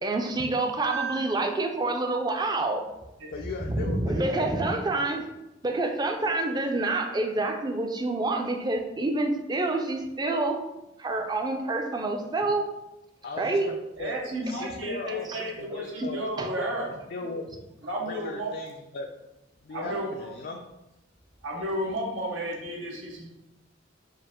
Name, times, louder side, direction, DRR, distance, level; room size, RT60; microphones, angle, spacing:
voice 1, 0.0-2.8 3.7-5.3 5.6-10.6 11.0-12.7 13.4-13.7 15.3-15.4 16.0-16.1 16.4-16.5, right 2 dB, 20° right, 4 dB, 0.4 m, -27 dB
voice 2, 3.3-4.5 13.2-14.2 14.4-16.2 16.5-16.7 17.1-17.5 17.8-19.1 19.6-20.6, left 3 dB, 50° left, 2 dB, 0.3 m, -38 dB
voice 3, 14.0-16.9 17.8-18.5 19.7-20.1 21.4-23.3, equal, 85° right, -2 dB, 1.0 m, -32 dB
4.7 x 2.5 x 3.6 m, 0.95 s
head